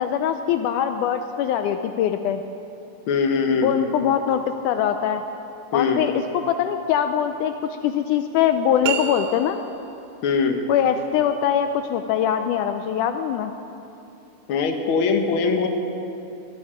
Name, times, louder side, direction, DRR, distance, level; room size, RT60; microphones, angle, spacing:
voice 1, 0.0-2.4 3.6-5.2 5.7-9.6 10.7-13.5, left 9 dB, 80° left, 8 dB, 2.0 m, -22 dB
voice 2, 3.1-3.7 5.7-6.0 10.2-10.6 14.5-15.7, left 5 dB, 60° left, 4 dB, 1.4 m, -21 dB
sound 1, 8.8-9.9, right 10 dB, 75° right, 1.7 m, -29 dB
20.5 x 13.0 x 5.0 m, 2.8 s
omnidirectional pair, 3.8 m